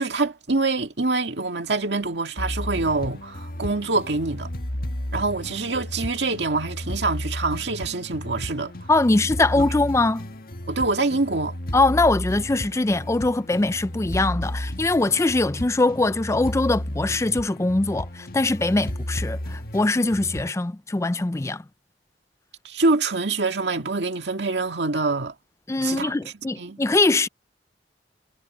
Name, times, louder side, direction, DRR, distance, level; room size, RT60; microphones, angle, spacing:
voice 1, 0.0-4.5 5.1-8.7 9.6-9.7 10.7-11.6 22.6-25.3 25.8-26.1 26.6-26.8, right 3 dB, 75° right, 2.0 m, -25 dB
sound 1, 2.4-20.5, left 1 dB, 55° left, 1.6 m, -33 dB
voice 2, 8.9-10.3 11.7-21.6 25.7-27.3, left 2 dB, 15° left, 0.4 m, -22 dB
head